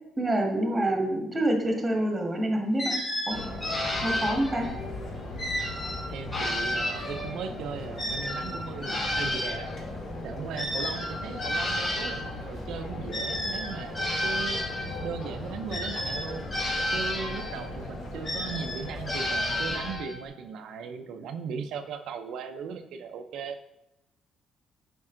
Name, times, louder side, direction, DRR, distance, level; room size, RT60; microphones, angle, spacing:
voice 1, 0.2-2.9 3.3-3.4 4.0-4.7, right 1 dB, 10° right, 2 dB, 1.5 m, -26 dB
sound 1, 2.8-4.8 5.4-7.5 8.0-12.3 13.1-15.1 15.7-17.7 18.2-20.2, left 1 dB, 20° left, 3.3 m, -32 dB
sound 2, 3.3-19.9, left 2 dB, 50° left, 2.1 m, -38 dB
voice 2, 6.1-9.7 10.2-14.6 15.0-16.5 16.9-23.6, right 6 dB, 65° right, 5 dB, 0.6 m, -37 dB
10.5 x 5.3 x 3.8 m, 0.92 s
cardioid pair, 175°, 0 cm